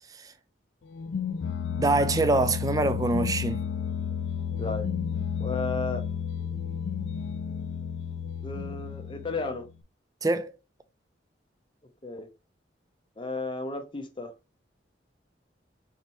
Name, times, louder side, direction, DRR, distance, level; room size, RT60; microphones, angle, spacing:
sound 1, 0.9-9.7, left 7 dB, 75° left, 0.3 m, -32 dB
voice 1, 1.8-3.6 10.2-10.5, right 2 dB, 20° right, 0.4 m, -24 dB
voice 2, 5.4-6.0 8.4-9.7 12.0-12.3 13.2-14.3, left 3 dB, 25° left, 0.6 m, -33 dB
4.1 x 3.3 x 2.9 m
head